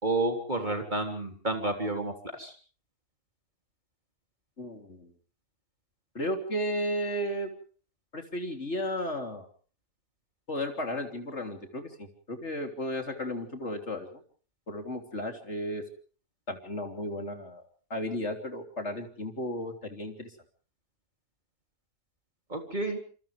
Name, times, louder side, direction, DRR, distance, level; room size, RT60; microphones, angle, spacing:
voice 1, 0.0-2.5 22.5-23.0, right 2 dB, 30° right, 3 dB, 3.6 m, -30 dB
voice 2, 4.6-5.1 6.2-7.5 8.1-9.5 10.5-14.2 14.7-15.9 16.5-17.6 17.9-20.3, equal, 50° left, 4 dB, 3.6 m, -34 dB
28.5 x 27.5 x 3.5 m, 0.43 s
omnidirectional pair, 1.5 m